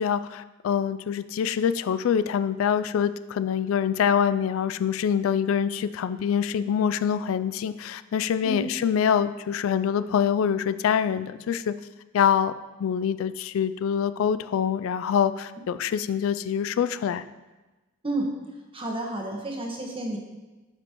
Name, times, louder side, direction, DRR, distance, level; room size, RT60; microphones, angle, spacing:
voice 1, 0.0-11.7 12.1-12.5 12.8-17.2, left 8 dB, 80° left, 13 dB, 0.3 m, -25 dB
voice 2, 18.7-20.2, right 1 dB, 25° right, 0 dB, 1.2 m, -30 dB
11.5 x 5.1 x 3.0 m, 1.2 s
head